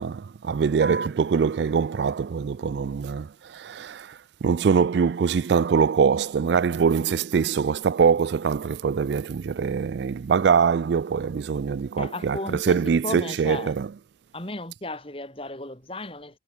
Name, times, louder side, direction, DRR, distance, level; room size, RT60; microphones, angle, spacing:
voice 1, 0.0-13.9, right 6 dB, 70° right, 0.4 m, -23 dB
sound 1, 0.8-7.8, right 3 dB, 55° right, 2.7 m, -44 dB
voice 2, 12.0-12.8 13.0-13.7 14.3-16.4, left 2 dB, 30° left, 4.2 m, -34 dB
head